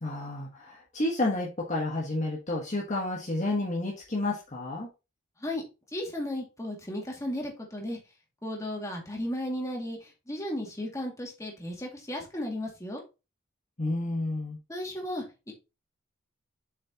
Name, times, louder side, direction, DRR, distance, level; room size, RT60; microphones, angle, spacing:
voice 1, 0.0-4.9 13.8-14.6, left 2 dB, 35° left, -2 dB, 1.4 m, -30 dB
voice 2, 5.9-8.0 8.4-13.0 14.7-15.5, left 1 dB, 15° left, 0 dB, 2.4 m, -35 dB
7.4 x 6.5 x 3.0 m, 0.28 s
head